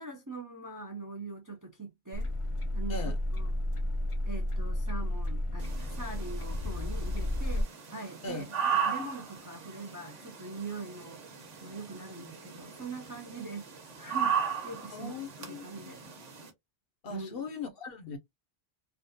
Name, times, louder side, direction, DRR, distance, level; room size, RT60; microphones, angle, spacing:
voice 1, 0.0-2.3 2.7-3.0 3.3-3.5 4.2-11.2 11.6-14.3 14.6-16.0 17.1-17.5, right 3 dB, 25° right, 0.5 m, -42 dB
sound 1, 2.1-7.6, left 1 dB, 40° left, 0.5 m, -32 dB
sound 2, 5.6-16.5, right 7 dB, 85° right, 1.3 m, -37 dB
voice 2, 14.9-15.9 17.0-18.2, left 4 dB, 60° left, 0.8 m, -39 dB
3.5 x 2.3 x 2.6 m
omnidirectional pair, 1.2 m